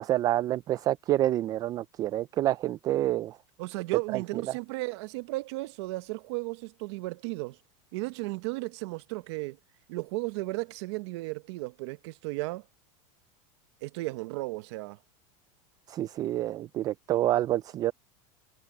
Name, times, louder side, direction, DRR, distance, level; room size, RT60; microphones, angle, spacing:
voice 1, 0.0-3.4 4.1-4.4 15.9-17.9, right 14 dB, 20° right, 0.4 m, -28 dB
voice 2, 3.6-7.6 7.9-9.6 9.9-12.6 13.8-15.0, right 23 dB, 55° right, 1.0 m, -34 dB
supercardioid pair, 160°, 17 cm